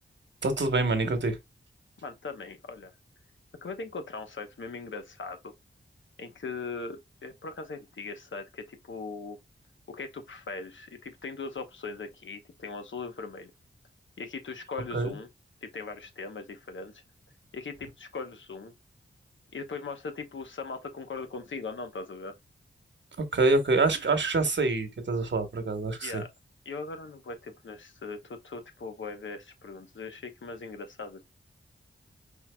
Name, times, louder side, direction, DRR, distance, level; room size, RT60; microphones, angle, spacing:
voice 1, 0.4-1.4 14.9-15.1 23.3-26.2, right 3 dB, 65° right, 1.1 m, -26 dB
voice 2, 2.0-2.9 3.6-5.4 6.2-9.4 9.9-13.5 14.2-15.3 15.6-17.0 17.5-18.7 19.5-22.3 26.0-26.3 26.6-31.2, left 4 dB, 70° left, 1.0 m, -39 dB
4.5 x 3.7 x 2.2 m
cardioid pair, 60°, 20 cm